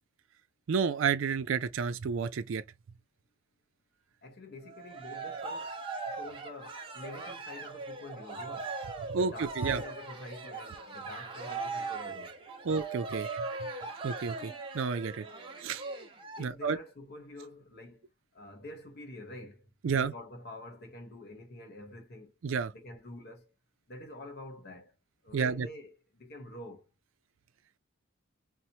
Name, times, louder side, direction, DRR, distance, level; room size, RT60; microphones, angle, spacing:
voice 1, 0.7-2.6 9.1-9.8 12.6-13.3 14.0-15.2 15.6-15.8 16.4-16.8 19.8-20.1 22.4-22.7 25.3-25.7, right 5 dB, 70° right, 0.4 m, -30 dB
voice 2, 4.2-5.7 6.1-8.7 9.2-12.4 16.4-18.0 18.3-22.3 22.7-23.5 23.9-24.9 25.2-26.8, left 2 dB, 55° left, 1.0 m, -47 dB
Cheering, 4.6-16.4, right 4 dB, 25° right, 0.9 m, -40 dB
4.5 x 2.1 x 2.7 m
head